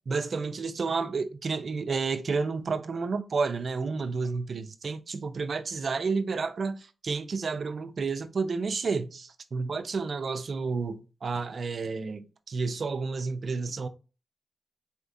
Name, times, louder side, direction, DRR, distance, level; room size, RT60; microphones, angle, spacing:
voice 1, 0.1-13.9, right 4 dB, 65° right, 0.6 m, -31 dB
4.3 x 3.6 x 2.6 m
cardioid pair, 55°, 0 cm